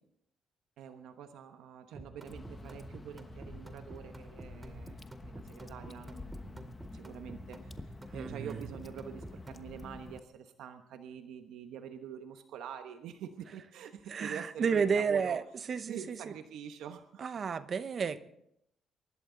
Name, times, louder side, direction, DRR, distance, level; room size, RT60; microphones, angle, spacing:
voice 1, 0.8-15.4 15.9-17.2, right 8 dB, 85° right, 7 dB, 1.1 m, -46 dB
sound 1, 1.9-9.7, right 2 dB, 20° right, 2.3 m, -48 dB
Water / Drip, 2.3-10.2, left 3 dB, 25° left, 1.1 m, -49 dB
voice 2, 8.1-8.6 14.1-16.3 17.2-18.2, right 6 dB, 50° right, 13 dB, 1.0 m, -32 dB
24.5 x 11.5 x 3.9 m, 0.76 s
cardioid pair, 90°, 0 cm